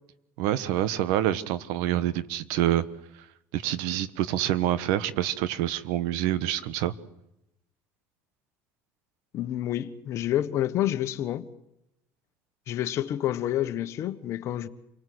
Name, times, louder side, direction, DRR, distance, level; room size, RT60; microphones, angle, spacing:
voice 1, 0.4-2.8 3.5-6.9, right 12 dB, 80° right, 1.3 m, -26 dB
voice 2, 9.3-11.5 12.7-14.7, left 12 dB, 55° left, 1.4 m, -28 dB
28.0 x 19.5 x 8.0 m
supercardioid pair, 115°, 6 cm